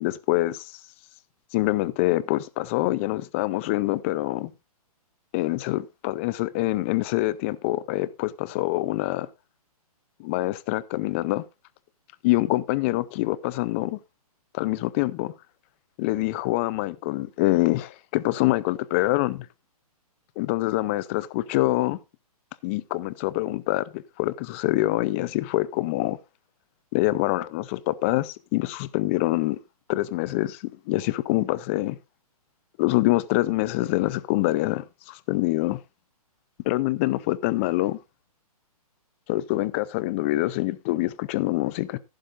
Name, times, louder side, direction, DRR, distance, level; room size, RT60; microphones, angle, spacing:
voice 1, 0.0-0.8 1.5-4.5 5.3-9.3 10.2-11.4 12.2-14.0 14.5-15.3 16.0-19.5 20.4-22.0 22.6-26.2 26.9-29.6 29.9-32.0 32.8-35.8 36.6-38.0 39.3-42.0, left 18 dB, 20° left, 0.5 m, -25 dB
14.0 x 11.5 x 2.5 m
hypercardioid pair, 155°, 20 cm